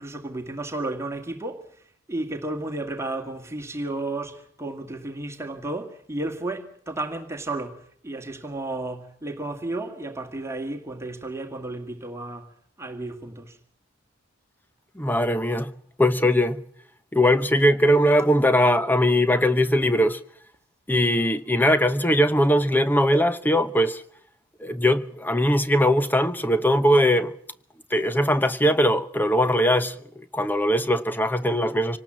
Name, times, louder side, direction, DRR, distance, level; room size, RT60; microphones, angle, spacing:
voice 1, 0.0-13.6, right 2 dB, 15° right, 1.9 m, -33 dB
voice 2, 15.0-16.6 17.1-20.2 20.9-24.0 24.6-27.3 27.9-30.0 30.3-32.0, equal, 10° left, 0.9 m, -20 dB
26.0 x 19.0 x 7.5 m
head